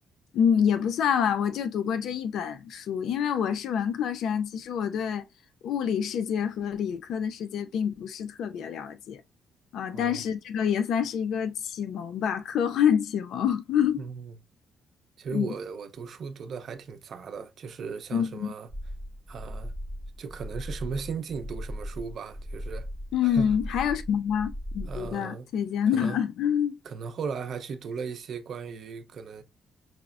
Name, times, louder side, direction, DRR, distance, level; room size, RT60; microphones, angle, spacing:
voice 1, 0.3-5.3 5.6-9.2 9.7-14.0 15.3-15.5 18.1-18.5 23.1-26.8, left 8 dB, 75° left, 0.4 m, -27 dB
voice 2, 9.9-10.2 14.0-14.4 15.2-18.7 19.3-19.7 20.2-22.9 23.2-23.5 24.9-25.5 25.9-26.2 26.8-29.4, right 5 dB, 60° right, 0.6 m, -37 dB
sound 1, 18.7-25.1, equal, 5° right, 0.5 m, -38 dB
5.7 x 2.0 x 2.3 m
cardioid pair, 90°, 0 cm